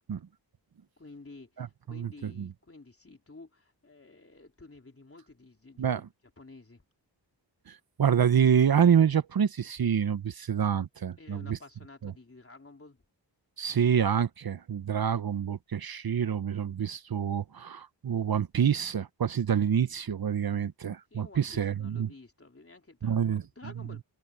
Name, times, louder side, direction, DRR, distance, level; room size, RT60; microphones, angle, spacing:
voice 1, 1.0-6.0 6.4-6.8 11.2-13.0 21.1-24.0, left 3 dB, 30° left, 3.7 m, -51 dB
voice 2, 1.6-2.5 5.8-6.1 7.7-11.6 12.0-12.1 13.6-22.1 23.0-23.4, right 8 dB, 55° right, 0.8 m, -27 dB
wide cardioid pair, 80°, 45 cm